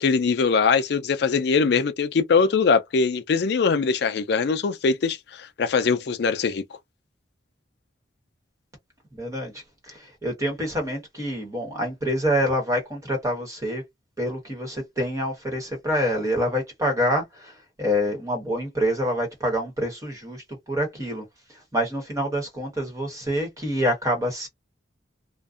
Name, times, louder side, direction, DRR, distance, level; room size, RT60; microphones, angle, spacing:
voice 1, 0.0-6.6, left 5 dB, 60° left, 0.4 m, -22 dB
voice 2, 9.1-9.5 9.9-13.8 14.2-21.2 21.5-24.5, equal, 15° right, 1.1 m, -26 dB
2.5 x 2.2 x 2.4 m
head